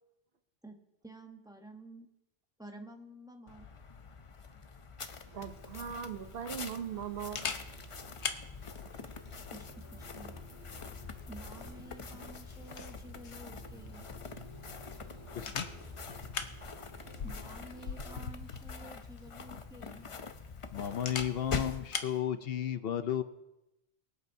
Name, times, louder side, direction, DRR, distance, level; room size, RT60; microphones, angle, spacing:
voice 1, 1.0-2.1 2.6-3.7 9.5-10.3 11.3-14.1 17.2-20.1, right 1 dB, 5° right, 3 dB, 0.9 m, -51 dB
sound 1, 3.5-21.9, left 5 dB, 40° left, 0.6 m, -45 dB
sound 2, 5.3-18.3, right 1 dB, 25° right, 1.9 m, -52 dB
voice 2, 5.3-7.6, right 8 dB, 65° right, 8 dB, 1.0 m, -39 dB
Camera, 5.5-22.2, left 6 dB, 80° left, 1.1 m, -45 dB
voice 3, 15.3-15.7 16.2-16.4 20.7-23.2, left 10 dB, 65° left, 11 dB, 0.8 m, -33 dB
23.0 x 8.3 x 2.7 m, 0.91 s
omnidirectional pair, 1.1 m